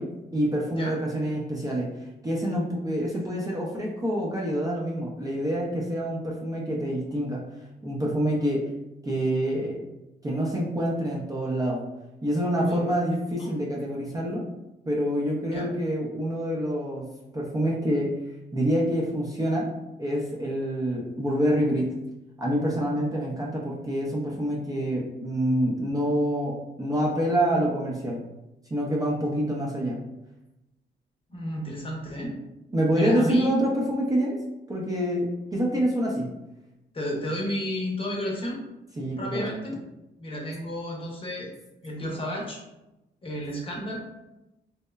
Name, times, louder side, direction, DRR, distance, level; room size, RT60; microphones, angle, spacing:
voice 1, 0.0-1.9 2.2-7.4 7.8-8.7 9.0-9.8 10.2-11.8 12.2-14.5 14.9-18.2 18.5-19.7 20.0-22.0 22.4-28.2 28.7-30.0 32.7-34.4 34.7-36.3 39.0-39.5, equal, 20° right, -4 dB, 0.5 m, -26 dB
voice 2, 12.6-13.0 13.4-13.5 15.5-15.7 31.3-32.4 32.9-33.5 36.9-38.6 39.2-39.7 40.2-41.5 41.8-42.6 43.2-44.0, equal, 25° left, -1 dB, 0.7 m, -32 dB
2.8 x 2.0 x 2.2 m, 0.95 s
cardioid pair, 90°, 20 cm